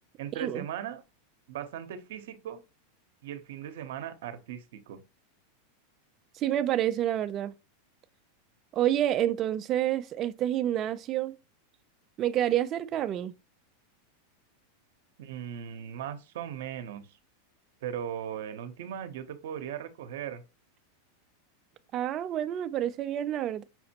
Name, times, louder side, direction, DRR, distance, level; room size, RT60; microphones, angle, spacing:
voice 1, 0.2-1.0 1.5-2.6 3.2-5.0 15.2-17.2 17.8-20.4, right 9 dB, 70° right, 0.7 m, -38 dB
voice 2, 6.4-7.5 8.7-11.3 12.2-13.3 21.9-23.6, right 11 dB, 35° right, 0.3 m, -28 dB
5.7 x 2.1 x 2.8 m
supercardioid pair, 135°, 0 cm